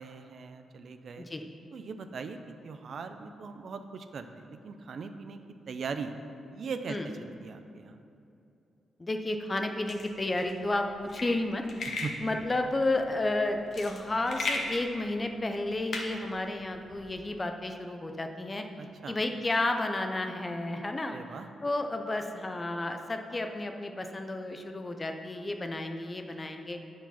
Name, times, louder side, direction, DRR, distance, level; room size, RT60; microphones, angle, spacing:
voice 1, 0.0-1.3 1.7-5.4 5.7-6.1 6.5-8.0 12.0-12.1 18.8-19.2 21.1-21.5, right 5 dB, 50° right, 8 dB, 0.4 m, -40 dB
voice 2, 9.0-11.6 12.2-18.6 19.1-21.2 21.6-26.8, left 2 dB, 20° left, 5 dB, 0.5 m, -32 dB
sound 1, 9.9-17.1, left 2 dB, 50° left, 1.0 m, -38 dB
9.3 x 4.7 x 5.7 m, 2.7 s
wide cardioid pair, 155°, 0 cm